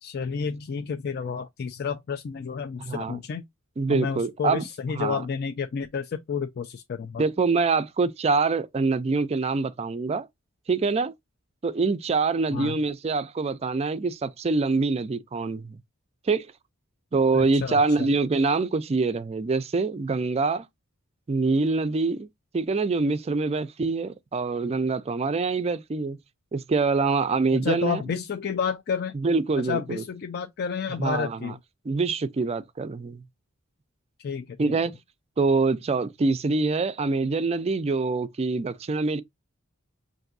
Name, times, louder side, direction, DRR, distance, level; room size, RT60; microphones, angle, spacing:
voice 1, 0.0-3.5 3.9-7.2 12.5-12.8 17.3-18.1 27.5-29.1 29.6-31.6 34.2-34.7, left 6 dB, 50° left, 0.3 m, -30 dB
voice 2, 2.9-3.2 3.8-4.6 5.0-5.2 7.2-10.3 10.7-11.1 11.6-15.8 16.3-16.5 17.1-20.7 21.3-22.3 22.5-26.2 26.5-28.0 29.1-30.0 31.0-31.5 31.9-33.2 34.6-35.0 35.4-39.2, right 3 dB, 30° right, 0.3 m, -25 dB
5.6 x 2.6 x 2.5 m
head